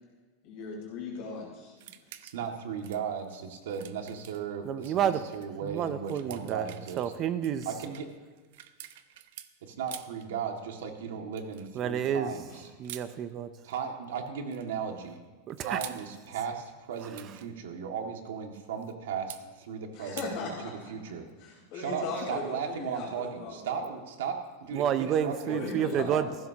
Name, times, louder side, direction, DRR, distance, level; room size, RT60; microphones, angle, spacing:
voice 1, 0.4-1.9 12.5-12.6 19.9-20.9 21.4-23.9 25.3-26.5, left 3 dB, 40° left, -3 dB, 4.2 m, -39 dB
sound 1, 1.8-2.5 2.8-5.0 5.3-5.5 5.9-9.5 9.9-10.3 11.4-11.7 12.8-13.1 14.2-14.7 15.5-16.1 16.9-17.5 19.3-19.4 20.2-20.3, right 12 dB, 55° right, 0.7 m, -47 dB
voice 2, 2.2-7.0 7.7-8.1 9.6-12.7 13.6-15.2 15.6-21.3 21.7-26.3, right 7 dB, 75° right, 3 dB, 2.0 m, -36 dB
voice 3, 4.6-5.2 5.6-6.7 7.0-7.7 11.7-12.3 12.8-13.5 15.5-15.8 24.7-26.2, right 9 dB, 25° right, 12 dB, 0.5 m, -29 dB
19.0 x 15.5 x 2.9 m, 1.3 s
supercardioid pair, 175°, 0 cm